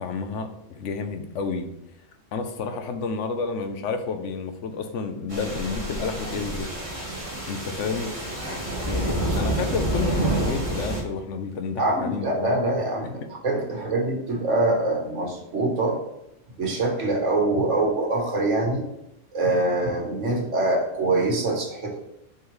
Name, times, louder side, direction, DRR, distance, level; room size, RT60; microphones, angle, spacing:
voice 1, 0.0-1.7 2.3-6.7 7.5-8.1 8.9-12.5, left 5 dB, 80° left, 7 dB, 1.1 m, -30 dB
sound 1, 5.3-11.0, right 1 dB, 25° right, 1.9 m, -28 dB
voice 2, 11.8-13.2 13.4-16.0 16.6-18.8 19.3-22.0, right 2 dB, 70° right, 1 dB, 1.7 m, -24 dB
6.7 x 4.5 x 3.2 m, 0.85 s
omnidirectional pair, 1.3 m